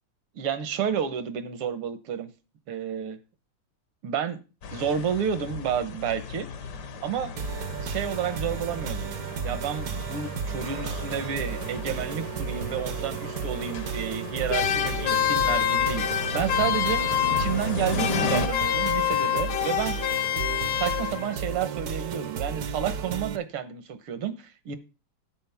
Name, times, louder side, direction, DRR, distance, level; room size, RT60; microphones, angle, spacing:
voice 1, 0.4-2.3 2.7-3.2 4.0-4.4 4.7-6.5 7.0-7.3 7.8-9.1 9.4-17.0 17.4-20.0 20.3-24.8, right 8 dB, 80° right, 2.0 m, -30 dB
sound 1, 4.6-18.5, left 4 dB, 60° left, 1.4 m, -36 dB
sound 2, 7.4-23.4, right 7 dB, 60° right, 1.0 m, -33 dB
sound 3, 14.5-17.7 18.0-21.4, left 11 dB, 80° left, 1.8 m, -26 dB
11.5 x 8.5 x 3.5 m
omnidirectional pair, 2.4 m